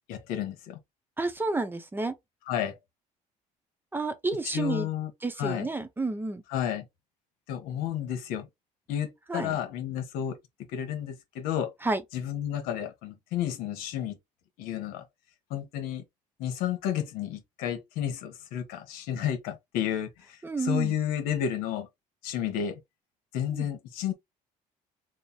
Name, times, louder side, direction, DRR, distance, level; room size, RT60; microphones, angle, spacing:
voice 1, 0.1-0.8 2.5-2.8 4.5-5.1 5.4-5.7 6.5-6.8 7.5-8.5 8.9-10.4 10.7-11.7 12.1-14.2 14.6-15.0 15.5-16.0 16.4-21.9 22.2-22.8 23.3-24.1, left 10 dB, 90° left, 1.0 m, -31 dB
voice 2, 1.2-2.1 3.9-4.9 5.2-6.4 9.3-9.6 11.8-12.0 20.4-20.9 23.5-23.7, right 3 dB, 15° right, 0.6 m, -30 dB
3.2 x 2.1 x 4.1 m
cardioid pair, 115°, 15 cm